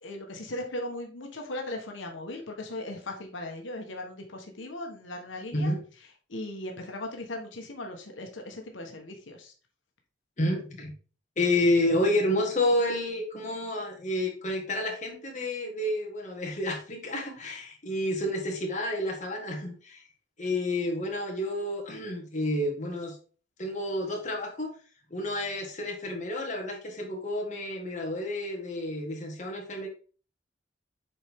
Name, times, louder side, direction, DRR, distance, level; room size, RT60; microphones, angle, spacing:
voice 1, 0.0-5.7 6.3-9.5, left 1 dB, 85° left, 2 dB, 1.2 m, -38 dB
voice 2, 10.4-10.9 11.4-20.0 20.4-23.2 23.6-24.7 25.1-29.9, left 1 dB, 40° left, 0 dB, 1.7 m, -29 dB
7.2 x 4.4 x 3.6 m, 0.39 s
head